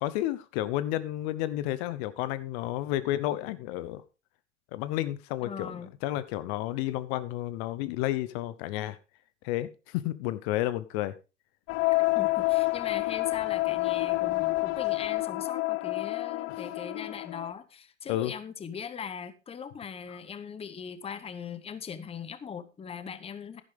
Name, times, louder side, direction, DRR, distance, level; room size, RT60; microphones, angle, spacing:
voice 1, 0.0-4.0 4.7-9.0 9.4-11.2 18.1-18.3 20.1-20.2, left 14 dB, 55° left, 1.0 m, -31 dB
voice 2, 5.4-5.9 12.1-23.6, left 6 dB, 15° left, 0.9 m, -40 dB
sound 1, 11.7-17.5, left 21 dB, 40° left, 0.5 m, -28 dB
11.0 x 10.5 x 3.6 m
hypercardioid pair, 110°, 36 cm